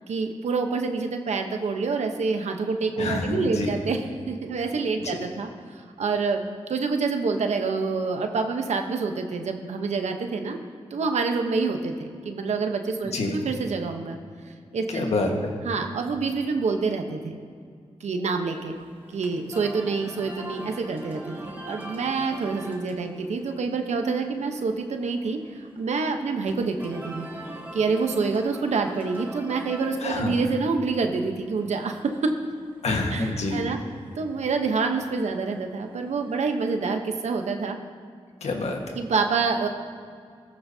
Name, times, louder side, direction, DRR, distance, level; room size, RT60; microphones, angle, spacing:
voice 1, 0.1-6.4 6.7-10.6 10.9-14.2 14.5-15.1 15.6-17.4 18.0-18.8 19.1-27.3 27.7-32.1 33.1-33.8 34.2-37.8 39.0-39.7, right 4 dB, 85° right, 5 dB, 1.0 m, -27 dB
voice 2, 3.0-3.8 5.0-5.2 13.1-13.4 14.9-15.5 30.0-30.4 32.8-33.6 38.4-38.9, left 2 dB, 70° left, 2 dB, 1.5 m, -27 dB
sound 1, 18.5-36.9, right 1 dB, 15° right, 1.8 m, -43 dB
15.0 x 14.5 x 2.8 m, 2.1 s
cardioid pair, 75°, 11 cm